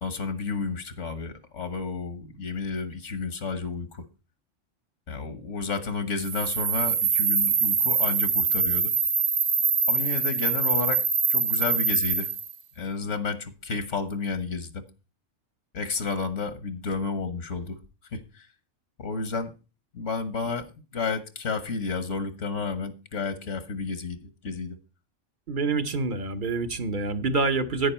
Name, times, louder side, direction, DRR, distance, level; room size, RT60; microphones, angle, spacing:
voice 1, 0.0-4.0 5.1-8.9 9.9-11.0 11.3-12.3 12.8-14.8 15.7-17.8 18.1-18.5 19.0-19.5 19.9-20.7 20.9-24.8, left 4 dB, 75° left, 1.5 m, -31 dB
sound 1, 6.2-12.5, right 6 dB, 75° right, 1.3 m, -24 dB
voice 2, 25.5-27.9, right 3 dB, 45° right, 1.0 m, -26 dB
10.5 x 9.4 x 4.3 m
omnidirectional pair, 1.3 m